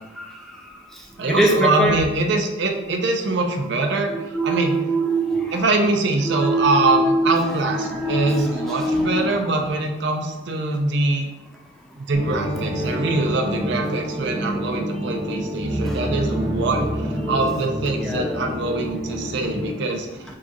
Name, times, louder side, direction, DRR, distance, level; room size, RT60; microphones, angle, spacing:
voice 1, 0.0-2.0 3.9-5.6 6.2-9.5 15.8-16.0 18.0-18.4, right 1 dB, ahead, -1 dB, 0.4 m, -24 dB
voice 2, 1.2-4.7 5.5-11.3 12.0-20.1, right 3 dB, 65° right, 3 dB, 0.5 m, -23 dB
sound 1, 12.1-19.7, equal, 30° right, 0.8 m, -27 dB
4.7 x 2.4 x 2.9 m, 1.1 s
head